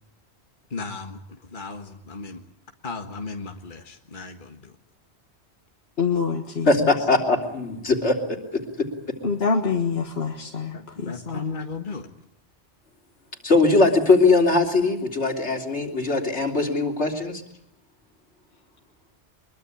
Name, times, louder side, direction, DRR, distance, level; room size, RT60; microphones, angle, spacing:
voice 1, 0.7-2.4 2.8-4.7 10.7-12.1, left 4 dB, 50° left, 4 dB, 1.8 m, -35 dB
voice 2, 6.0-6.7 9.2-11.4, left 5 dB, 65° left, 1 dB, 1.9 m, -26 dB
voice 3, 6.6-8.2 13.4-17.4, left 3 dB, 90° left, 2 dB, 3.6 m, -20 dB
23.5 x 22.5 x 8.6 m, 0.77 s
omnidirectional pair, 1.1 m